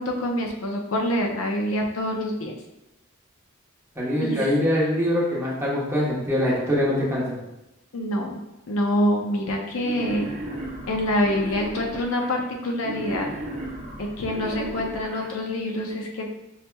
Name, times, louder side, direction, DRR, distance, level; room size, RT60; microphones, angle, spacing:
voice 1, 0.0-2.5 4.2-4.5 7.9-8.4 8.7-10.3 10.9-13.3 14.0-16.2, left 1 dB, 70° left, 1 dB, 0.6 m, -26 dB
voice 2, 4.0-7.4, equal, 10° right, -6 dB, 1.0 m, -23 dB
Wild animals, 9.8-12.3 12.8-15.3, right 1 dB, 35° right, 0.8 m, -35 dB
5.6 x 2.8 x 2.2 m, 0.94 s
head